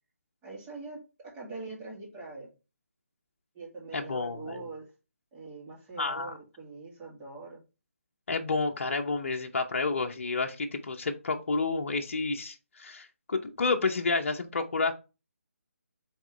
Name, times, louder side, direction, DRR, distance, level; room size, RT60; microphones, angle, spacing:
voice 1, 0.4-2.5 3.5-4.9 5.3-7.6, right 3 dB, 20° right, -4 dB, 2.4 m, -43 dB
voice 2, 3.9-4.7 6.0-6.3 8.3-14.9, left 3 dB, 55° left, 3 dB, 0.8 m, -30 dB
8.1 x 3.7 x 3.2 m, 0.30 s
figure-of-eight pair, 155°, 8 cm